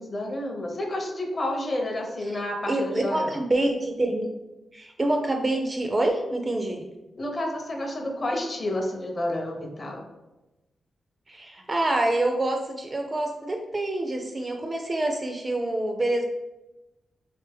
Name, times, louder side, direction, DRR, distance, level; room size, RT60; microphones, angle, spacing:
voice 1, 0.0-3.4 7.2-10.0, left 1 dB, 30° left, 2 dB, 0.6 m, -30 dB
voice 2, 2.7-4.3 4.7-6.9 11.3-16.2, right 1 dB, 20° right, 3 dB, 0.3 m, -26 dB
3.4 x 3.3 x 3.3 m, 1.0 s
wide cardioid pair, 175°, 0 cm